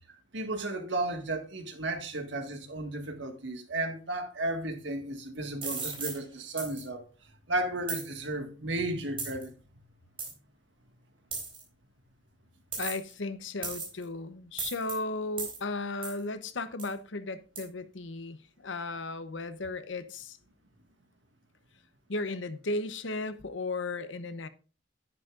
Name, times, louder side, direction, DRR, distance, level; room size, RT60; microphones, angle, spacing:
voice 1, 0.3-7.0 7.5-9.6, right 2 dB, 75° right, 1.7 m, -34 dB
sound 1, 5.6-6.2 6.6-6.8 7.9-8.1 9.2-9.4 10.2-10.3 11.3-11.6 12.7-13.1 13.6-14.0 14.6-14.9 15.4-15.6 16.0-16.2 16.8-16.9 17.6-17.7, right 5 dB, 30° right, 4.0 m, -36 dB
voice 2, 12.8-20.4 22.1-24.5, left 2 dB, 80° left, 0.8 m, -35 dB
10.5 x 10.0 x 2.5 m
head